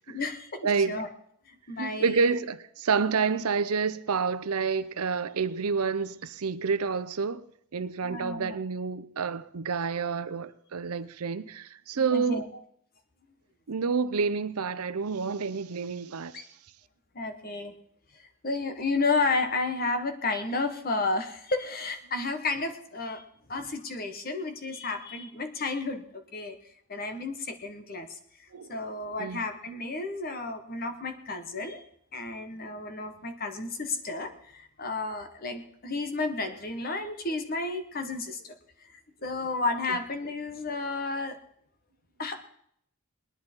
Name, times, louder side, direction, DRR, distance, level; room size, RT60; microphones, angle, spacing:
voice 1, 0.1-1.1 1.7-2.4 8.0-8.6 12.1-12.4 16.3-16.4 17.1-17.7 18.4-23.2 23.5-26.6 26.9-28.2 28.7-31.8 32.1-38.5 39.2-41.4 42.2-42.4, left 3 dB, 40° left, 1.3 m, -32 dB
voice 2, 0.6-1.0 1.8-7.4 7.7-12.5 13.7-16.4 28.5-28.7 29.2-29.5 39.9-40.0, right 5 dB, 80° right, 0.7 m, -29 dB
19.5 x 10.5 x 4.5 m
head